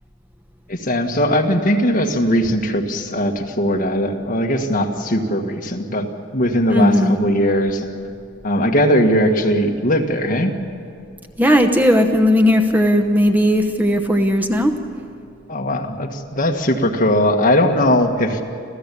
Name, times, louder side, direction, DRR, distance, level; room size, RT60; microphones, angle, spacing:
voice 1, 0.7-8.0 8.4-10.5 15.5-18.4, equal, 45° left, 3 dB, 1.7 m, -19 dB
voice 2, 6.7-7.1 11.4-14.8, equal, 10° right, 5 dB, 0.9 m, -16 dB
27.0 x 15.0 x 8.5 m, 2.3 s
head